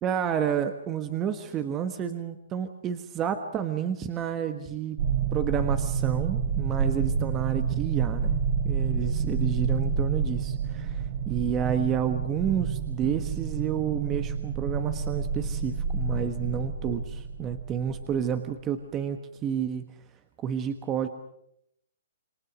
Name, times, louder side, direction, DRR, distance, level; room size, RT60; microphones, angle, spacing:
voice 1, 0.0-5.0 5.3-19.8 20.4-21.1, right 8 dB, 20° right, 8 dB, 1.4 m, -30 dB
sound 1, 5.0-18.3, right 6 dB, 50° right, 4.3 m, -29 dB
28.0 x 23.0 x 6.2 m, 0.73 s
hypercardioid pair, 155°, 0 cm